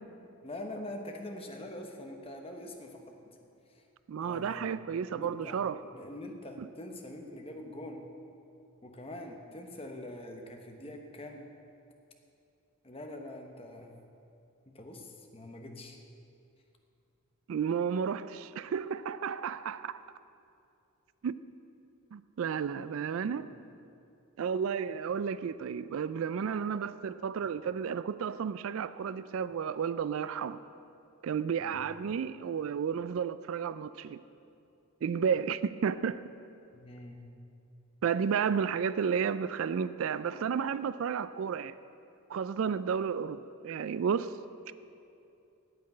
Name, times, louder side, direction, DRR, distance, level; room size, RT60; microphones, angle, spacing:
voice 1, 0.4-3.2 3.7-3.9 4.2-4.7 5.1-5.6 5.9-8.0 8.8-11.4 12.8-13.9 14.7-16.0 23.3-23.4 31.6-31.8 36.7-37.2, left 1 dB, 25° left, 1.1 m, -44 dB
voice 2, 4.1-5.8 6.6-6.7 17.5-20.0 21.2-21.4 22.1-23.5 24.4-30.6 31.2-34.2 35.0-36.2 38.0-41.7 42.3-44.3, right 7 dB, 60° right, 0.3 m, -32 dB
9.3 x 8.6 x 8.8 m
head